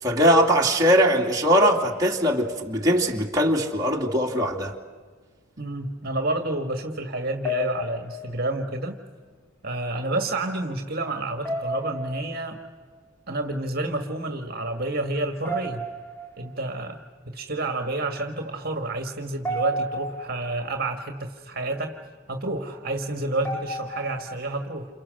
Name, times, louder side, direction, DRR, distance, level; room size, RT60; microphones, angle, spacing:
voice 1, 0.0-4.8, equal, 15° right, 2.6 m, -21 dB
voice 2, 5.6-9.0 9.6-12.6 13.3-15.9 16.4-22.0 22.3-24.9, right 2 dB, 45° right, 1.8 m, -29 dB
sound 1, 7.4-8.9 11.4-12.9 15.4-16.7 19.4-20.7 23.4-24.4, equal, 10° left, 2.2 m, -32 dB
29.0 x 28.5 x 6.5 m
head